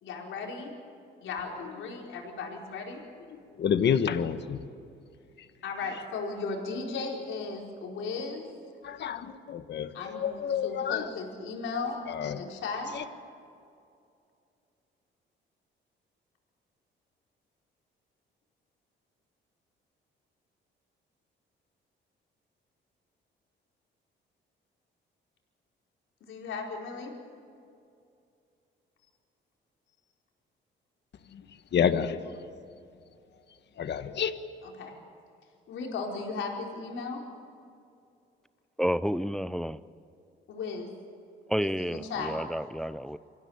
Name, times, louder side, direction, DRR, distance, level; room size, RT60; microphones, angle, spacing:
voice 1, 0.0-0.7 1.2-3.0 5.6-8.4 9.9-12.9 26.3-27.1 34.6-34.9 35.7-37.2 40.5-40.9 41.6-42.4, left 4 dB, 80° left, 0 dB, 4.7 m, -36 dB
voice 2, 3.3-4.6 8.8-11.1 12.1-12.4 12.9-13.0 31.3-31.4 31.7-32.2 33.8-34.3, left 8 dB, 60° left, 10 dB, 1.4 m, -29 dB
voice 3, 38.8-39.8 41.5-43.2, equal, ahead, 15 dB, 0.6 m, -30 dB
25.5 x 16.5 x 8.7 m, 2.5 s
cardioid pair, 90°, 20 cm